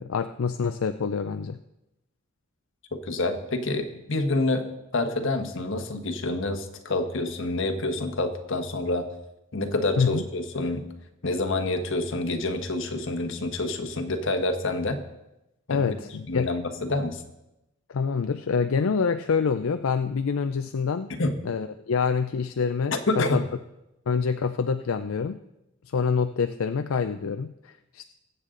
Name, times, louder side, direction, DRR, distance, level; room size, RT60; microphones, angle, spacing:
voice 1, 0.0-1.6 10.0-10.2 15.7-16.5 17.9-21.1 21.4-23.5 24.1-25.4 25.9-28.1, left 5 dB, 85° left, 8 dB, 0.5 m, -26 dB
voice 2, 2.9-4.7 4.9-9.0 9.5-10.8 11.2-15.0 15.7-16.0 16.3-17.2 21.1-21.4 22.9-23.4, left 2 dB, 65° left, 5 dB, 1.4 m, -27 dB
22.0 x 8.2 x 3.8 m, 0.93 s
head